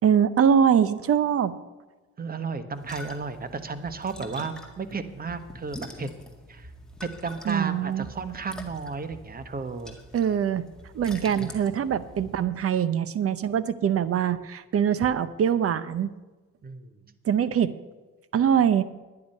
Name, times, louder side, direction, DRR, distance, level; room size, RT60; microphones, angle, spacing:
voice 1, 0.0-1.5 7.5-8.1 10.1-10.7 10.9-16.1 17.2-17.7 18.3-18.8, right 8 dB, 50° right, 15 dB, 0.7 m, -23 dB
voice 2, 2.2-6.1 6.5-6.7 7.2-9.9 16.6-16.9, right 4 dB, 30° right, 11 dB, 1.0 m, -33 dB
sound 1, 2.7-12.4, left 1 dB, ahead, 1.9 m, -45 dB
10.5 x 10.0 x 5.4 m, 1.2 s
cardioid pair, 90°, 30 cm